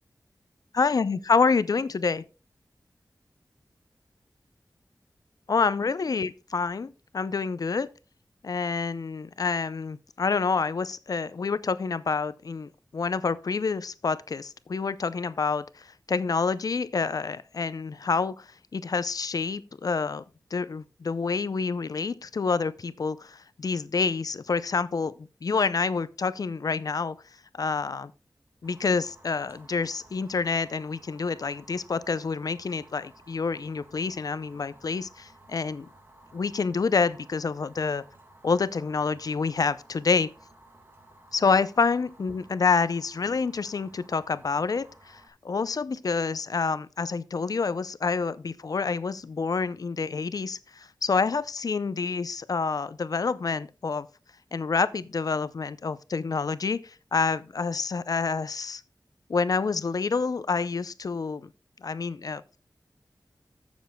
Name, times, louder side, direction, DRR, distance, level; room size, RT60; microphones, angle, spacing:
voice 1, 0.7-2.2 5.5-7.9 8.4-20.2 20.5-27.2 27.6-28.1 28.6-35.9 36.3-38.0 38.4-40.3 41.3-54.1 54.5-58.8 59.3-61.5 61.8-62.4, left 4 dB, 60° left, 0.5 m, -28 dB
Fire, 28.6-45.3, right 1 dB, 30° right, 1.5 m, -55 dB
14.0 x 7.1 x 2.2 m
wide cardioid pair, 85°, 7 cm